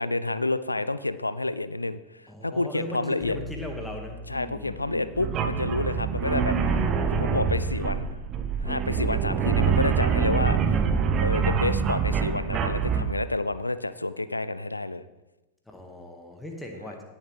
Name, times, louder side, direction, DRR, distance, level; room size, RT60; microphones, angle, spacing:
voice 1, 0.0-3.4 4.3-6.6 7.1-8.2 8.6-10.8 11.2-15.0, left 2 dB, 85° left, 14 dB, 0.4 m, -29 dB
voice 2, 2.3-5.3 9.4-9.8 15.7-17.0, left 1 dB, 5° left, 2 dB, 1.7 m, -39 dB
sound 1, 3.2-9.0, left 1 dB, 25° left, 1.6 m, -45 dB
sound 2, 5.1-13.1, right 6 dB, 30° right, 0.8 m, -25 dB
17.5 x 7.2 x 3.3 m, 1.1 s
figure-of-eight pair, 90°, 0 cm